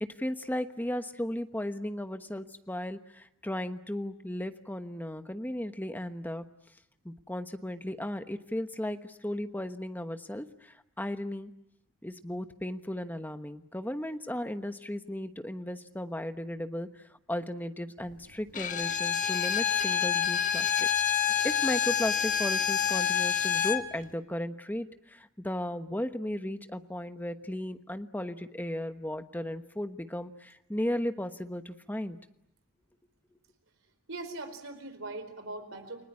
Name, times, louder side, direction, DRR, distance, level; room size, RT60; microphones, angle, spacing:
voice 1, 0.0-6.4 7.0-11.5 12.0-17.0 17.3-20.9 21.4-32.2, left 1 dB, 10° left, 9 dB, 1.1 m, -35 dB
Bowed string instrument, 18.5-23.8, left 8 dB, 40° left, 1.3 m, -27 dB
voice 2, 34.1-36.0, right 2 dB, 65° right, 8 dB, 4.5 m, -40 dB
29.5 x 20.0 x 9.9 m, 0.83 s
head